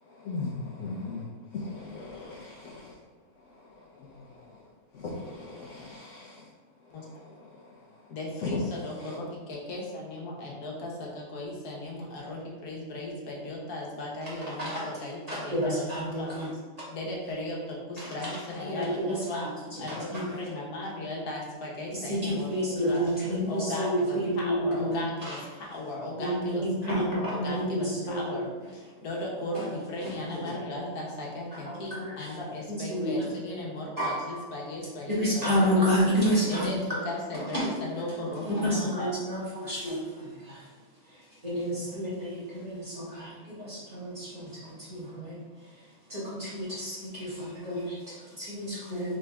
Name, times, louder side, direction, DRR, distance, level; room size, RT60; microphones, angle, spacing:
voice 1, 0.2-1.2 1.6-2.9 4.9-6.4 8.4-8.6, left 3 dB, 65° left, -4 dB, 0.9 m, -37 dB
voice 2, 8.1-15.8 16.2-16.3 16.9-19.0 19.2-19.4 19.8-23.0 23.5-26.6 26.9-28.4 29.0-35.8 36.5-37.6 38.0-39.1, left 1 dB, 85° left, -3 dB, 1.5 m, -36 dB
voice 3, 14.2-16.5 16.8-16.9 18.0-20.5 21.9-25.7 26.2-28.9 29.5-30.5 31.6-32.4 32.7-33.4 34.0-34.7 35.1-37.1 37.3-49.2, equal, 25° right, -9 dB, 1.4 m, -31 dB
3.9 x 3.4 x 3.4 m, 1.4 s
omnidirectional pair, 1.6 m